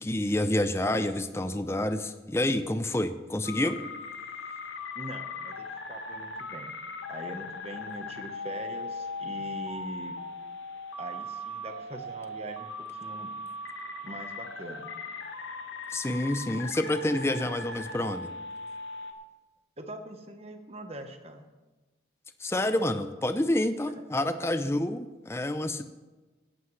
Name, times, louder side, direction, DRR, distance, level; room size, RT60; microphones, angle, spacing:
voice 1, 0.0-3.8 15.9-18.3 22.4-25.8, left 1 dB, 15° left, 10 dB, 0.5 m, -28 dB
sound 1, 3.4-19.1, left 2 dB, 85° left, 1.2 m, -39 dB
voice 2, 4.9-6.7 7.1-10.2 11.0-12.7 13.0-13.3 14.0-14.9 19.8-21.5, right 1 dB, 35° right, 6 dB, 1.1 m, -42 dB
17.0 x 11.5 x 3.2 m, 1.2 s
head